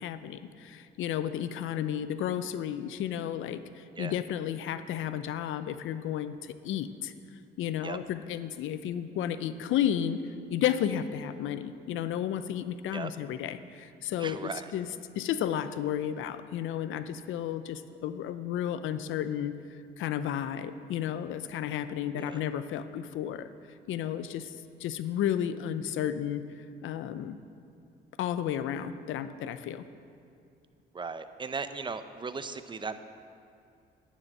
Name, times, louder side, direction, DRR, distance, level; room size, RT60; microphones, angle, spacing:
voice 1, 0.0-7.1 7.6-10.2 10.5-14.4 14.7-14.9 15.1-19.6 20.0-23.5 23.9-24.5 24.8-26.4 26.8-27.4 28.2-29.8, left 10 dB, 80° left, 12 dB, 0.6 m, -32 dB
voice 2, 14.2-14.7 22.1-22.4 30.9-33.0, right 4 dB, 25° right, 11 dB, 0.6 m, -37 dB
9.7 x 7.5 x 7.6 m, 2.4 s
cardioid pair, 90°, 20 cm